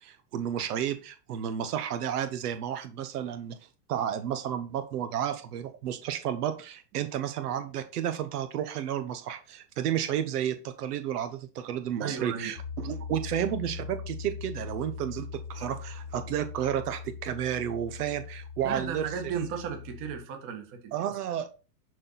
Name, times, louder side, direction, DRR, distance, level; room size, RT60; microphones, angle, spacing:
voice 1, 0.0-3.6 3.9-19.1 20.9-21.5, right 10 dB, 70° right, 9 dB, 1.2 m, -32 dB
voice 2, 12.0-12.5 18.6-21.1, right 7 dB, 25° right, 4 dB, 1.6 m, -35 dB
Piano, 12.6-20.2, left 6 dB, 90° left, 1.9 m, -41 dB
11.0 x 4.5 x 4.0 m, 0.33 s
supercardioid pair, 175°, 48 cm